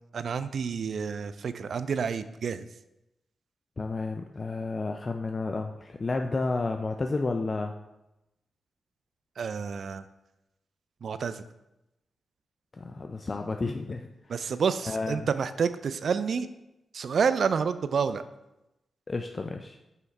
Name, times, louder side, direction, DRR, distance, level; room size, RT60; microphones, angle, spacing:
voice 1, 0.1-2.7 9.4-10.0 11.0-11.4 14.3-16.5 16.9-18.2, right 6 dB, 70° right, 12 dB, 0.3 m, -29 dB
voice 2, 3.8-7.8 12.7-14.1 14.3-14.5 14.9-15.3 19.1-19.8, left 3 dB, 40° left, 5 dB, 0.4 m, -31 dB
5.6 x 4.6 x 4.0 m, 0.93 s
cardioid pair, 55°, 0 cm